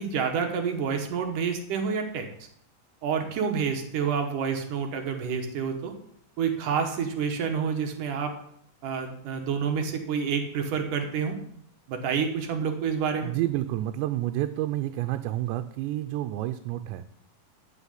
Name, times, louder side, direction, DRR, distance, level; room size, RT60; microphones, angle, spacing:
voice 1, 0.0-2.3 3.0-5.9 6.4-8.3 8.8-11.4 11.9-13.3, right 6 dB, 65° right, 4 dB, 2.4 m, -28 dB
voice 2, 13.2-17.0, right 14 dB, 85° right, 8 dB, 2.8 m, -29 dB
11.5 x 6.4 x 8.4 m, 0.68 s
omnidirectional pair, 5.0 m